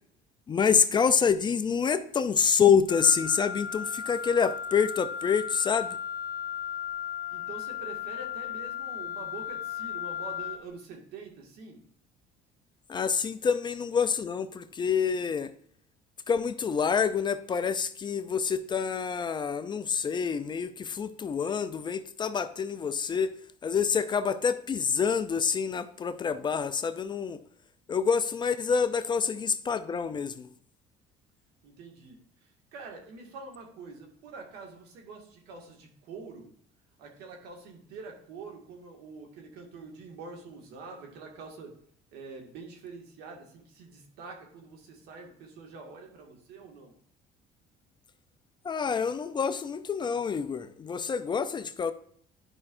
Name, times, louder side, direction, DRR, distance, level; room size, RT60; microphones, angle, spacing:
voice 1, 0.5-6.0 12.9-15.5 16.3-23.3 23.6-27.4 27.9-30.5 48.6-51.9, left 6 dB, 30° left, 11 dB, 0.4 m, -27 dB
Wind instrument woodwind instrument, 2.9-10.7, left 8 dB, 70° left, 1.2 m, -36 dB
voice 2, 7.3-11.8 31.6-36.5 37.0-41.7 42.1-46.9, right 4 dB, 80° right, 2 dB, 1.9 m, -45 dB
11.0 x 5.4 x 2.6 m, 0.62 s
cardioid pair, 115°, 17 cm